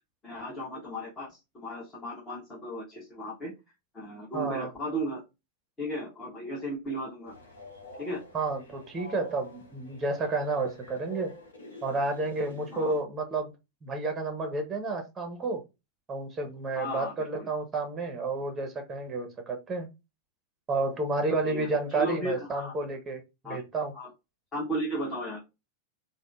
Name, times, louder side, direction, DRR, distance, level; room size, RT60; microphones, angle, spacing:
voice 1, 0.2-3.5 3.9-5.2 5.8-7.3 8.0-8.2 12.7-12.9 16.7-17.5 21.4-22.7 23.4-23.6 23.9-24.1 24.5-25.4, right 1 dB, 20° left, 1.0 m, -35 dB
voice 2, 4.3-4.7 8.3-11.3 11.8-13.5 13.8-15.6 16.1-19.9 20.7-23.9, right 3 dB, 20° right, 0.7 m, -31 dB
Train, 7.3-13.0, left 2 dB, 70° left, 0.9 m, -47 dB
3.5 x 2.1 x 2.3 m
figure-of-eight pair, 90°, 0 cm